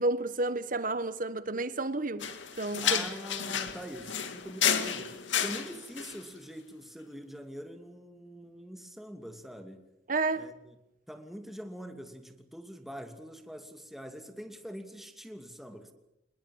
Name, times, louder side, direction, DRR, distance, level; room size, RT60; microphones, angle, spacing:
voice 1, 0.0-2.3 2.6-3.0 10.1-10.5, right 2 dB, 45° right, 1.4 m, -31 dB
sound 1, 2.2-6.2, left 8 dB, 85° left, 2.2 m, -31 dB
voice 2, 2.8-9.8 10.4-10.7 11.1-15.9, equal, ahead, 2.6 m, -44 dB
27.0 x 21.5 x 7.3 m
head